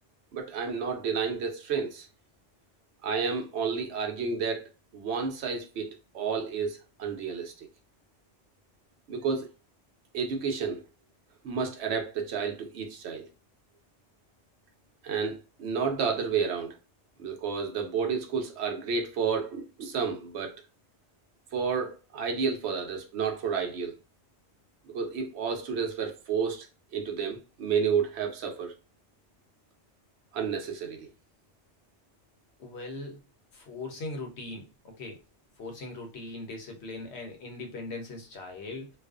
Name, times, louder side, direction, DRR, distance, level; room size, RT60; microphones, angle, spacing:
voice 1, 0.3-2.1 3.0-5.9 6.1-7.7 9.1-9.5 10.1-10.8 11.4-13.2 15.0-16.7 17.2-20.6 21.5-23.9 24.9-26.7 26.9-28.7 30.3-31.1, right 6 dB, 70° right, 0.8 m, -31 dB
voice 2, 32.6-33.2 33.5-35.2 35.6-38.9, left 2 dB, 70° left, 0.9 m, -40 dB
2.4 x 2.3 x 2.3 m
omnidirectional pair, 1.2 m